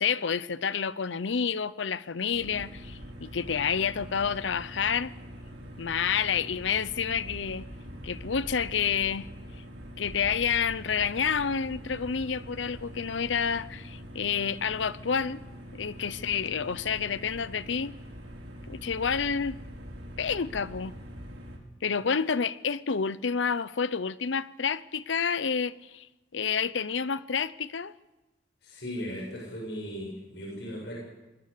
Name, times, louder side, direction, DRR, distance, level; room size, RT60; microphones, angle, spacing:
voice 1, 0.0-5.1 5.8-7.7 8.0-9.3 10.0-15.4 15.7-17.9 18.7-19.6 20.2-21.0 21.8-26.1 26.3-27.9, left 6 dB, 85° left, 0.7 m, -29 dB
sound 1, 2.3-21.6, equal, 70° right, 5.7 m, -44 dB
voice 2, 28.6-31.0, equal, 70° left, 7.2 m, -37 dB
26.5 x 21.0 x 6.8 m
head